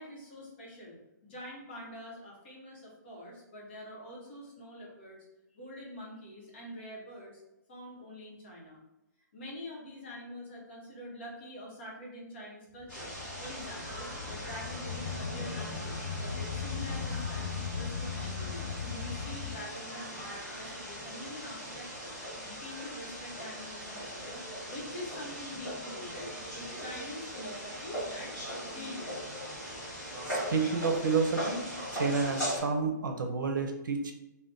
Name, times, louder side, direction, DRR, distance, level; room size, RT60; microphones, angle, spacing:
voice 1, 0.0-5.2 5.5-7.4 7.7-8.8 9.3-13.1 13.4-22.2 22.4-26.3 26.5-28.4 28.6-29.3, left 1 dB, 35° left, -3 dB, 0.9 m, -45 dB
sound 1, 12.8-19.6, left 6 dB, 65° left, 0.4 m, -38 dB
sound 2, 12.9-32.6, equal, 10° left, 1.2 m, -40 dB
voice 2, 30.2-31.6 31.9-34.1, right 4 dB, 85° right, 4 dB, 0.6 m, -30 dB
2.5 x 2.2 x 3.5 m, 0.96 s
hypercardioid pair, 175°, 10 cm